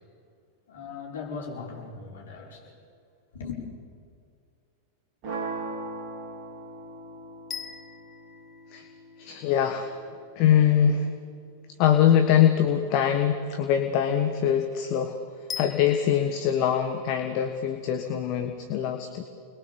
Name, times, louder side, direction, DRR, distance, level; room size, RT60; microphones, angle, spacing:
voice 1, 0.7-2.7 3.3-3.6, left 5 dB, 60° left, -1 dB, 5.6 m, -38 dB
sound 1, 5.2-11.3, right 3 dB, 40° right, 4.7 m, -40 dB
sound 2, 7.5-9.6 15.5-16.2, left 6 dB, 20° left, 1.3 m, -41 dB
voice 2, 9.2-10.0 10.3-11.1 11.8-15.2 15.6-19.2, left 9 dB, 45° left, 6 dB, 1.5 m, -23 dB
29.5 x 21.5 x 7.1 m, 2.3 s
figure-of-eight pair, 90°, 0 cm